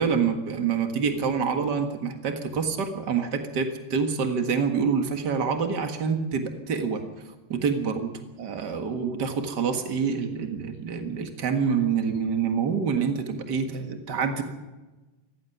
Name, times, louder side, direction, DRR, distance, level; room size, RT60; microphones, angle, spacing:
voice 1, 0.0-7.0 7.5-8.1 8.4-14.4, right 6 dB, 60° right, 6 dB, 1.0 m, -26 dB
17.5 x 15.0 x 9.9 m, 1.1 s
omnidirectional pair, 4.8 m